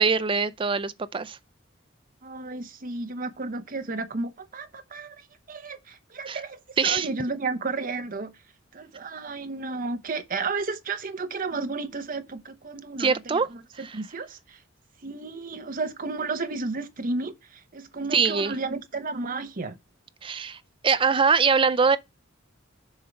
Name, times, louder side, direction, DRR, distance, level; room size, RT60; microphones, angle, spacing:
voice 1, 0.0-1.4 6.3-6.4 6.8-7.1 13.0-13.5 13.8-14.0 18.1-18.5 20.2-20.6 20.8-22.0, right 5 dB, 25° right, 0.4 m, -23 dB
voice 2, 2.2-8.3 8.7-14.6 15.0-19.8, right 3 dB, 45° right, 0.9 m, -33 dB
7.3 x 4.6 x 5.1 m
head